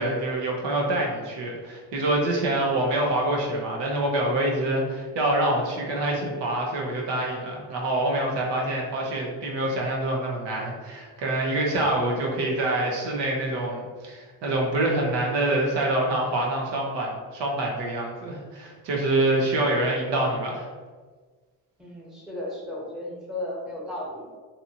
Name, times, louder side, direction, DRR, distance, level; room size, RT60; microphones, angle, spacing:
voice 1, 0.0-20.6, right 1 dB, 85° right, -1 dB, 0.7 m, -26 dB
voice 2, 21.8-24.3, left 1 dB, ahead, -5 dB, 1.0 m, -34 dB
2.8 x 2.4 x 2.7 m, 1.4 s
supercardioid pair, 65°, 42 cm